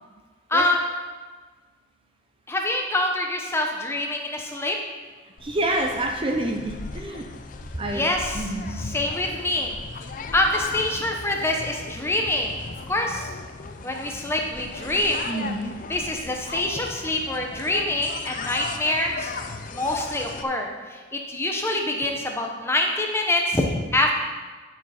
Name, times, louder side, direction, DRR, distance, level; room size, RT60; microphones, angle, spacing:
voice 1, 0.5-0.8 2.5-4.8 7.9-8.4 8.8-9.7 10.3-12.5 12.9-13.3 13.8-15.2 15.9-19.3 19.7-24.1, left 1 dB, 15° left, 1 dB, 0.9 m, -25 dB
sound 1, 5.4-20.4, left 4 dB, 40° left, 0.5 m, -37 dB
voice 2, 5.4-7.2 7.8-8.8 15.3-15.8, right 1 dB, 25° right, 3 dB, 0.6 m, -28 dB
11.5 x 6.4 x 4.3 m, 1.4 s
head